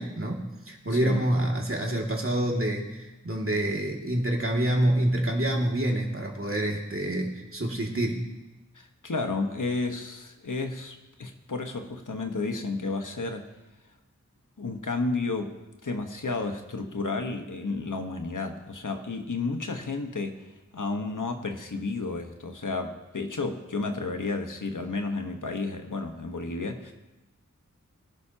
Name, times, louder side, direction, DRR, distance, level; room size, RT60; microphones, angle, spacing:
voice 1, 0.0-8.3, right 1 dB, 45° right, 0 dB, 2.4 m, -27 dB
voice 2, 0.9-1.3 8.7-13.5 14.6-20.5 20.7-26.9, left 3 dB, 80° left, 4 dB, 1.4 m, -32 dB
22.0 x 11.5 x 2.9 m, 1.0 s
wide cardioid pair, 55°, 31 cm